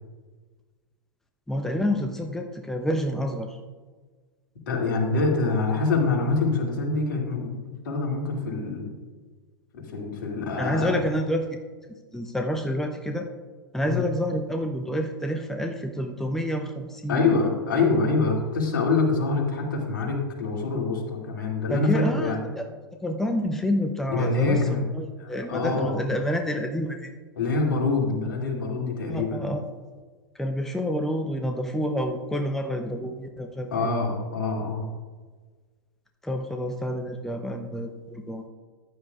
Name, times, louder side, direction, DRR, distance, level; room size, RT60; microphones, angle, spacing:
voice 1, 1.5-3.6 10.6-11.6 12.1-13.3 13.7-17.3 21.7-22.7 23.0-27.1 29.1-29.6 30.3-33.9 36.2-38.4, equal, 5° left, 4 dB, 0.7 m, -28 dB
voice 2, 4.7-8.9 9.7-11.0 13.8-14.0 17.1-22.4 24.1-24.8 25.2-26.0 27.4-29.5 33.7-34.8, left 3 dB, 60° left, 0 dB, 2.4 m, -25 dB
14.0 x 9.8 x 2.4 m, 1.4 s
figure-of-eight pair, 95°, 12 cm